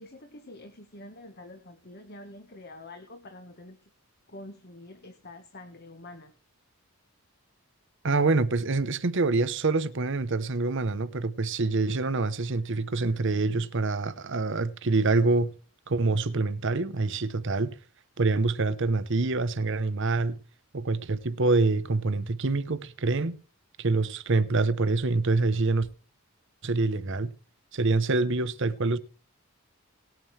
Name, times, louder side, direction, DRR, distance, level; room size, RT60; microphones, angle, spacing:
voice 1, 0.0-3.9 4.3-6.3, left 2 dB, 45° left, 1.4 m, -46 dB
voice 2, 8.0-15.5 15.9-17.8 18.2-20.4 20.7-23.4 23.8-25.9 26.6-27.3 27.7-29.0, right 3 dB, 55° right, 0.9 m, -26 dB
19.0 x 9.2 x 3.3 m
head